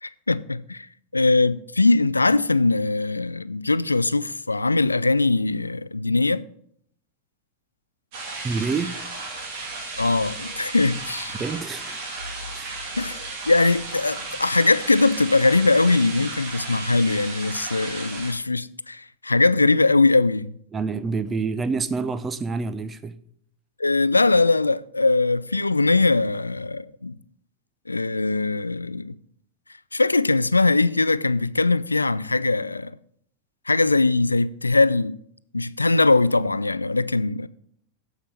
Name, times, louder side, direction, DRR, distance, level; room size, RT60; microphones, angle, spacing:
voice 1, 0.0-0.9 1.1-6.4 10.0-11.3 13.0-13.2 13.5-20.6 23.8-27.1 27.9-29.2 29.9-32.9 33.7-35.2 35.5-37.5, left 3 dB, 80° left, 0.3 m, -21 dB
sound 1, 8.1-18.3, right 3 dB, 50° right, 2.8 m, -34 dB
voice 2, 8.4-8.9 11.4-12.0 12.5-12.8 20.7-23.1, right 4 dB, 20° right, 0.5 m, -27 dB
10.0 x 6.9 x 4.3 m
figure-of-eight pair, 90°, 0 cm